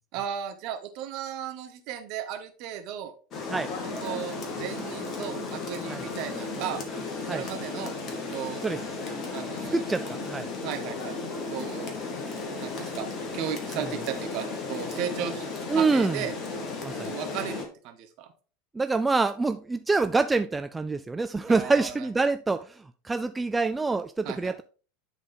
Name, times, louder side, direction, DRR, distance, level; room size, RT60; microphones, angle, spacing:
voice 1, 0.1-3.1 4.0-6.8 7.2-8.0 8.3-8.6 9.3-9.8 10.6-11.2 11.5-11.9 12.3-13.1 13.3-15.5 15.7-16.3 16.9-18.3 21.5-22.1 24.2-24.5, right 9 dB, 50° right, 1.2 m, -35 dB
Rain, 3.3-17.6, left 3 dB, 35° left, 1.8 m, -34 dB
voice 2, 9.7-10.5 15.7-16.2 16.8-17.1 18.7-24.6, right 3 dB, 10° right, 0.3 m, -26 dB
10.5 x 3.9 x 3.7 m
figure-of-eight pair, 80°, 0 cm